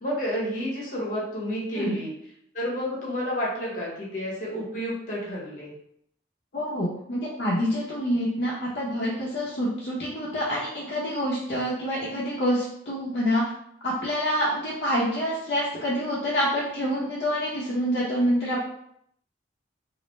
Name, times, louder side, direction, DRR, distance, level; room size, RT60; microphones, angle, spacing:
voice 1, 0.0-2.1 2.5-5.7, equal, 45° left, -4 dB, 0.9 m, -30 dB
voice 2, 6.5-13.4 13.8-18.6, equal, 60° left, -7 dB, 0.6 m, -27 dB
2.4 x 2.1 x 3.0 m, 0.71 s
head